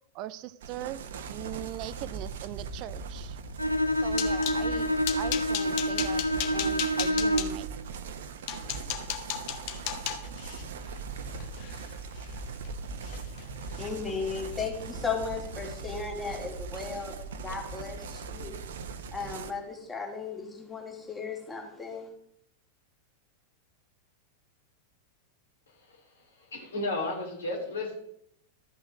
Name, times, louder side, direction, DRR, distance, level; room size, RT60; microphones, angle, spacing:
voice 1, 0.1-1.0 1.3-3.4 4.0-4.9 5.2-6.2 6.5-7.7, right 14 dB, 40° right, 0.5 m, -40 dB
sound 1, 0.6-19.5, right 4 dB, 60° right, 1.0 m, -40 dB
Bowed string instrument, 3.6-7.7, equal, 90° left, 0.7 m, -28 dB
sound 2, 3.7-4.6 5.0-7.5 8.1-8.2 8.5-12.7 13.0-13.4 13.7-13.9 14.3-14.5, left 11 dB, 45° left, 1.2 m, -36 dB
voice 2, 13.8-17.2 17.4-18.6 19.1-22.1, left 5 dB, 10° left, 2.8 m, -36 dB
voice 3, 26.5-28.0, left 2 dB, 65° left, 3.3 m, -32 dB
13.5 x 6.2 x 6.3 m
figure-of-eight pair, 90°, 0 cm